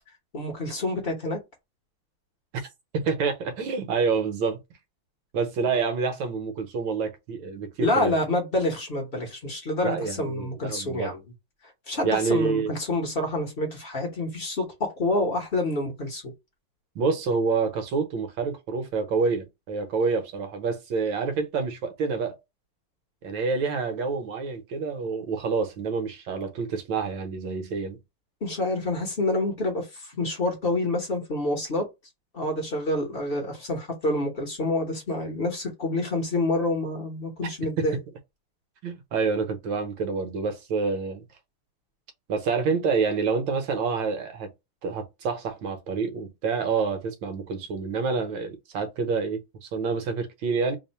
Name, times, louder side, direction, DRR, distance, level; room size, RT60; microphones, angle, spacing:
voice 1, 0.3-1.4 7.8-11.2 11.9-16.2 28.4-31.8 32.3-38.0, left 2 dB, 45° left, 0.7 m, -27 dB
voice 2, 2.9-4.6 5.3-8.2 9.8-11.1 12.0-12.7 16.9-22.4 23.2-28.0 37.8-38.0 38.8-41.2 42.3-44.5 44.8-50.8, right 5 dB, 70° right, 1.5 m, -27 dB
3.5 x 2.1 x 4.2 m
omnidirectional pair, 2.2 m